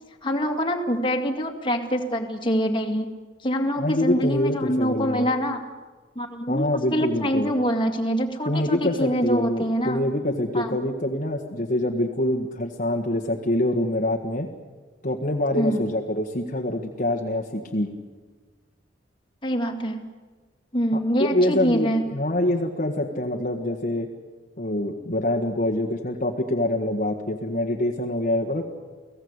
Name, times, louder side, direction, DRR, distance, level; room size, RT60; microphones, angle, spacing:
voice 1, 0.2-3.1 3.4-5.6 6.2-10.0 10.5-10.8 15.5-15.8 19.4-20.1 20.7-22.0, equal, 25° left, 2 dB, 2.3 m, -25 dB
voice 2, 3.8-5.3 6.5-7.5 8.5-14.5 15.0-17.9 20.9-24.1 24.6-28.6, left 1 dB, 45° left, 1 dB, 1.7 m, -25 dB
30.0 x 17.5 x 8.2 m, 1.4 s
head